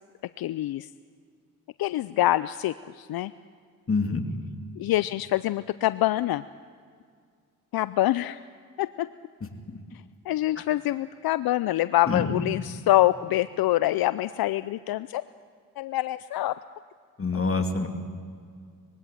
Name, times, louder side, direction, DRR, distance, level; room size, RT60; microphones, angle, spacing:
voice 1, 0.4-0.9 1.8-3.3 4.8-6.4 7.7-8.4 8.8-9.1 10.3-15.2 15.8-16.6, left 15 dB, 75° left, 15 dB, 0.5 m, -25 dB
voice 2, 3.9-4.2 10.6-10.7 12.1-12.4 17.2-17.9, left 4 dB, 35° left, 4 dB, 2.7 m, -26 dB
21.5 x 16.5 x 9.2 m, 2.1 s
cardioid pair, 60°, 36 cm